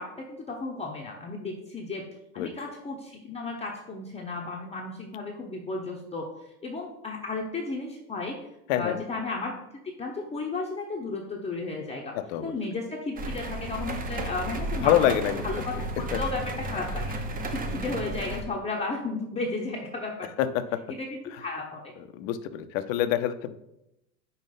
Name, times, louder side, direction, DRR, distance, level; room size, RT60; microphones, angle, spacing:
voice 1, 0.0-2.0 2.3-8.4 8.7-9.5 10.0-12.2 12.4-17.1 17.5-20.3 20.9-21.9, left 3 dB, 15° left, -2 dB, 0.9 m, -34 dB
voice 2, 8.7-9.0 12.1-12.5 14.8-15.4 16.1-16.2 17.7-17.9 20.4-20.8 22.1-23.6, left 11 dB, 55° left, 11 dB, 0.8 m, -26 dB
sound 1, 13.1-18.4, right 2 dB, 20° right, 0.8 m, -33 dB
5.5 x 4.5 x 5.7 m, 0.85 s
hypercardioid pair, 95°, 48 cm